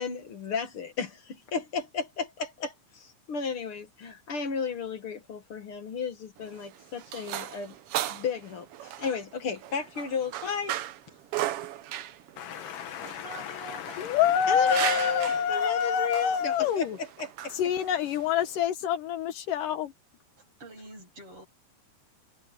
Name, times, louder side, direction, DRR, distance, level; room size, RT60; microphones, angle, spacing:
voice 1, 0.0-7.7 8.1-10.8 14.5-17.5, left 6 dB, 50° left, 1.9 m, -34 dB
sound 1, 6.4-18.7, right 13 dB, 85° right, 1.3 m, -37 dB
voice 2, 12.4-17.0 17.5-19.9, left 8 dB, 80° left, 2.9 m, -27 dB
voice 3, 13.2-14.4 14.8-14.9 15.2-15.4 20.4-21.5, right 2 dB, 40° right, 7.6 m, -46 dB
omnidirectional pair, 3.8 m